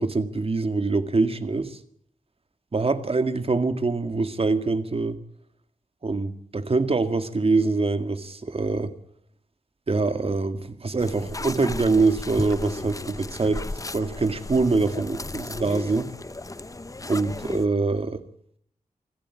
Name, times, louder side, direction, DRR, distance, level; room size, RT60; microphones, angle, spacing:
voice 1, 0.0-1.8 2.7-5.2 6.0-8.9 9.9-13.6 13.9-16.1 17.1-18.2, right 3 dB, 45° right, 2.1 m, -24 dB
sound 1, 11.0-17.7, left 2 dB, 25° left, 1.0 m, -35 dB
26.0 x 14.0 x 9.7 m
wide cardioid pair, 100°, 14 cm